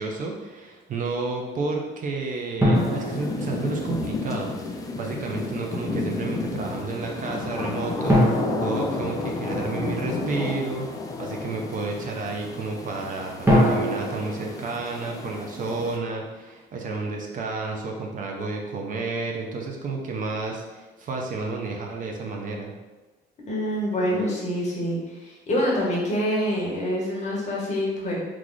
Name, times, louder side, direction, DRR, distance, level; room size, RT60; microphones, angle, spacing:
voice 1, 0.0-10.9 11.2-22.7, right 3 dB, 45° right, 1 dB, 0.5 m, -31 dB
sound 1, 2.6-4.2 8.1-10.0 13.5-15.7, equal, 10° right, 0.8 m, -24 dB
sound 2, 2.7-16.0, left 3 dB, 20° left, 0.3 m, -32 dB
voice 2, 23.5-28.1, equal, 35° left, -3 dB, 1.1 m, -26 dB
3.1 x 2.4 x 3.8 m, 1.2 s
cardioid pair, 130°, 19 cm